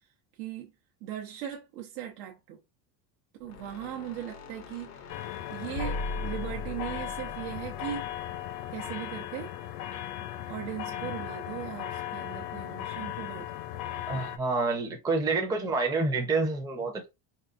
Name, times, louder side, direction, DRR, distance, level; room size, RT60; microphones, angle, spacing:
voice 1, 0.4-0.7 1.0-2.6 3.4-4.9 5.5-8.0 8.7-9.5 10.5-13.5, right 11 dB, 70° right, 0.8 m, -38 dB
sound 1, 3.4-8.7, left 2 dB, 35° left, 0.5 m, -40 dB
sound 2, 5.1-14.4, left 12 dB, 65° left, 0.8 m, -37 dB
voice 2, 14.1-17.1, right 3 dB, 10° right, 0.6 m, -28 dB
4.0 x 2.4 x 2.4 m
cardioid pair, 145°, 47 cm